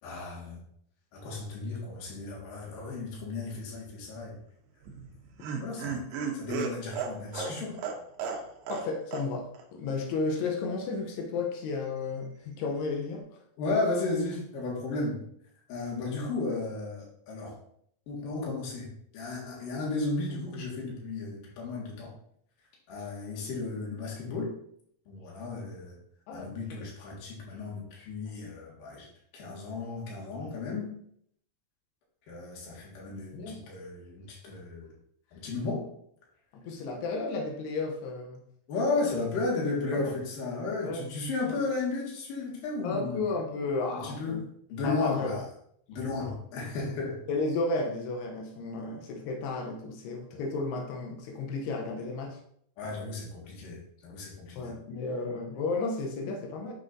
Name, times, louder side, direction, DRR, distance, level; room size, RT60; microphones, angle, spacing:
voice 1, 0.0-0.6 1.1-4.4 5.6-6.0 6.3-7.8 13.6-15.2 15.7-17.6 18.1-18.9 19.1-22.1 22.9-24.5 25.1-26.0 26.3-29.1 29.3-30.9 32.3-34.9 35.3-35.8 38.7-43.2 43.9-44.4 44.7-45.4 45.9-47.2 52.8-54.7, left 3 dB, 65° left, -3 dB, 3.3 m, -34 dB
Laughter, 4.8-8.9 9.1-9.2 9.5-9.6, right 6 dB, 80° right, 2.9 m, -34 dB
voice 2, 8.7-13.4 26.3-26.9 33.3-33.6 36.5-38.4 39.9-40.0 40.8-41.1 41.5-41.6 42.8-44.4 44.8-45.4 46.2-46.4 47.3-52.4 54.5-56.7, left 3 dB, 90° left, 1 dB, 2.9 m, -33 dB
7.6 x 6.2 x 2.6 m, 0.68 s
omnidirectional pair, 4.6 m